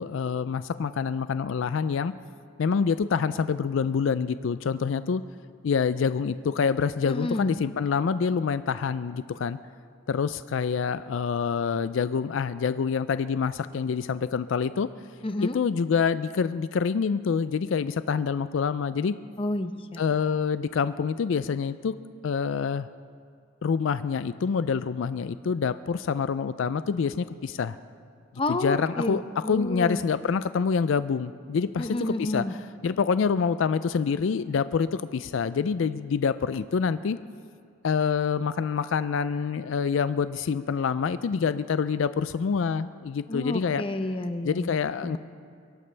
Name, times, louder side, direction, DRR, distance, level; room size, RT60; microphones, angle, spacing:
voice 1, 0.0-2.1 2.6-5.2 5.6-9.6 10.1-14.9 15.4-19.1 20.0-21.9 22.2-22.9 23.6-27.8 28.5-32.5 32.8-37.2 37.8-43.8 44.4-45.2, left 6 dB, 75° left, 13 dB, 0.4 m, -26 dB
voice 2, 7.1-7.5 15.2-15.6 19.4-20.0 28.4-30.0 31.8-32.5 43.3-44.8 45.0-45.2, left 1 dB, 25° left, 8 dB, 0.7 m, -30 dB
23.5 x 17.0 x 3.3 m, 2.2 s
head